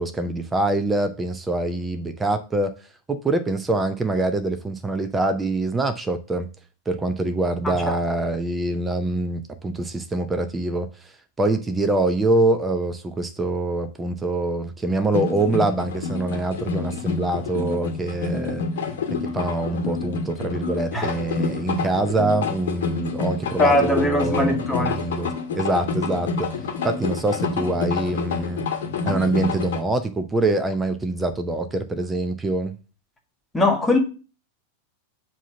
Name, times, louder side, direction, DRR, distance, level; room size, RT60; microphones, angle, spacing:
voice 1, 0.0-2.7 3.1-6.5 6.9-10.9 11.4-18.6 19.1-26.5 26.8-28.6 29.0-32.8, right 2 dB, 10° right, 0.6 m, -24 dB
sound 1, 15.1-29.8, left 4 dB, 60° left, 1.0 m, -28 dB
voice 2, 23.6-25.0 33.5-34.0, left 2 dB, 10° left, 1.3 m, -21 dB
7.1 x 2.9 x 5.7 m
figure-of-eight pair, 90°, 0 cm